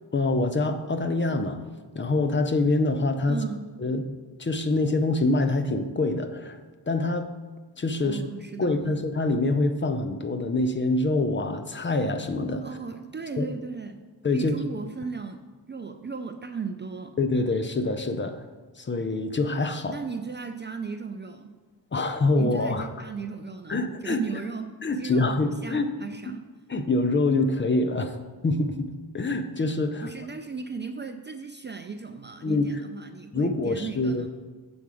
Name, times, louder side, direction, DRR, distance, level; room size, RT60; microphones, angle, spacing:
voice 1, 0.1-1.6 1.9-3.4 3.8-4.1 4.4-6.6 6.9-7.3 7.8-8.2 8.6-12.7 13.4-13.5 14.2-14.6 17.2-18.4 18.8-20.0 21.9-22.9 23.7-24.2 24.8-25.9 26.3-26.4 26.7-28.2 28.4-30.1 32.4-32.7 33.3-34.3, left 2 dB, 30° left, 8 dB, 0.6 m, -25 dB
voice 2, 3.3-3.7 8.0-8.9 12.6-14.0 14.3-17.2 19.8-21.6 22.4-26.5 30.0-34.3, right 5 dB, 25° right, 7 dB, 0.4 m, -36 dB
7.1 x 4.7 x 6.2 m, 1.4 s
cardioid pair, 100°, 42 cm